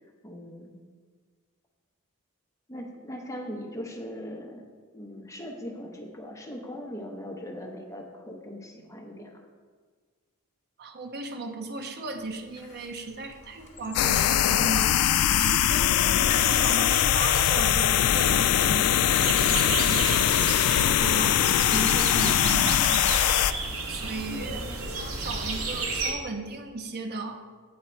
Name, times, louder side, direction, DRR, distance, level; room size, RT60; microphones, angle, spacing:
voice 1, 0.2-0.7 2.7-4.6 4.9-9.4 24.0-24.8, equal, 15° left, 0 dB, 0.9 m, -40 dB
voice 2, 10.8-22.9 23.9-27.5, right 3 dB, 50° right, 5 dB, 0.7 m, -36 dB
Squeak, 12.6-12.9 13.2-14.4 14.7-17.0 17.5-18.5 18.8-19.8 20.3-21.8, left 4 dB, 35° left, 1.1 m, -37 dB
sound 1, 13.9-23.5, left 11 dB, 80° left, 0.3 m, -22 dB
sound 2, 19.2-26.1, right 3 dB, 65° right, 1.0 m, -32 dB
9.4 x 3.7 x 4.4 m, 1.5 s
head